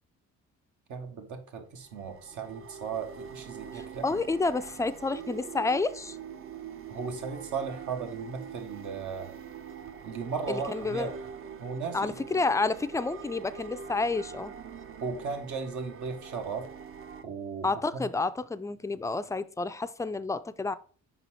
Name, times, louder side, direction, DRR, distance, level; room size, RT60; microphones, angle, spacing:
voice 1, 0.9-4.2 6.9-9.3 10.0-11.2 11.6-12.1 15.0-16.7 17.2-18.1, right 5 dB, 75° right, 1.3 m, -36 dB
sound 1, 1.8-17.2, right 6 dB, 45° right, 0.5 m, -44 dB
voice 2, 3.7-6.2 10.5-11.1 11.9-14.5 17.6-20.7, left 3 dB, 10° left, 0.3 m, -30 dB
5.6 x 4.1 x 4.4 m
cardioid pair, 90°, 30 cm